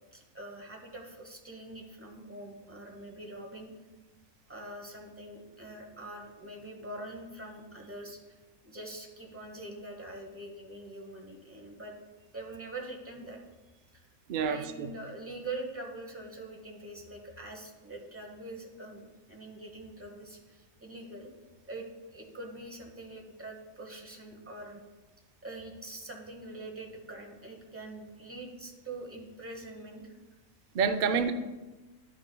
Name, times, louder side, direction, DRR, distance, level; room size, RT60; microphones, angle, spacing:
voice 1, 0.1-3.7 4.5-8.4 8.6-12.0 12.3-14.1 14.4-21.3 21.7-21.8 22.1-24.8 25.4-30.2 30.9-31.3, right 2 dB, 10° right, 1 dB, 0.8 m, -44 dB
voice 2, 14.3-14.9 30.7-31.3, right 6 dB, 70° right, 7 dB, 0.4 m, -28 dB
11.0 x 6.0 x 2.2 m, 1.2 s
omnidirectional pair, 1.5 m